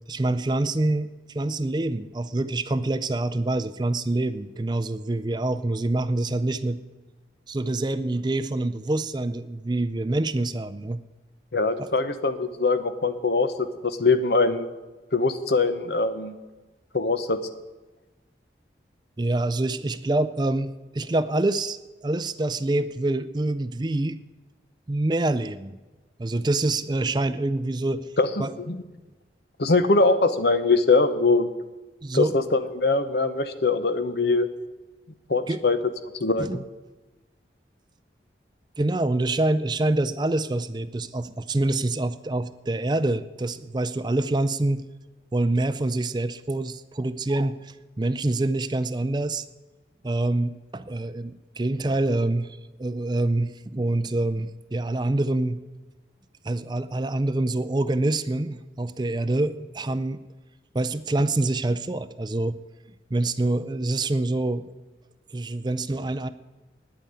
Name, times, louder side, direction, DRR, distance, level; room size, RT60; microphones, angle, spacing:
voice 1, 0.1-1.1 1.3-6.8 7.5-11.0 11.8-11.9 19.2-21.8 22.0-24.2 24.9-25.8 26.2-28.1 28.4-28.5 32.0-32.3 35.5-35.6 36.4-36.6 38.8-44.8 45.3-49.4 50.0-55.6 56.4-60.2 60.7-62.6 63.1-64.6 65.3-66.3, right 2 dB, 25° right, 13 dB, 0.4 m, -26 dB
voice 2, 11.5-14.7 15.1-16.4 16.9-17.4 28.2-28.8 29.6-31.5 32.1-34.5 35.3-35.8 36.2-36.6, left 3 dB, 65° left, 11 dB, 0.9 m, -22 dB
9.7 x 8.9 x 8.8 m, 1.2 s
head